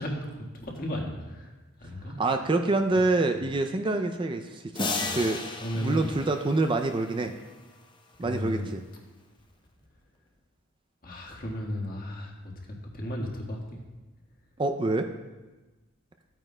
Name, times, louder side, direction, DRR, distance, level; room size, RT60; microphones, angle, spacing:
voice 1, 0.0-1.5 1.8-2.2 5.0-5.1 5.6-6.0 8.2-8.7 11.0-13.8, equal, 45° left, 0 dB, 1.6 m, -35 dB
voice 2, 2.2-5.4 5.7-7.3 8.2-8.8 14.6-15.1, right 2 dB, 25° right, 6 dB, 0.4 m, -26 dB
sound 1, 4.7-7.2, left 3 dB, 25° left, 0.7 m, -34 dB
14.0 x 9.0 x 2.2 m, 1.2 s
head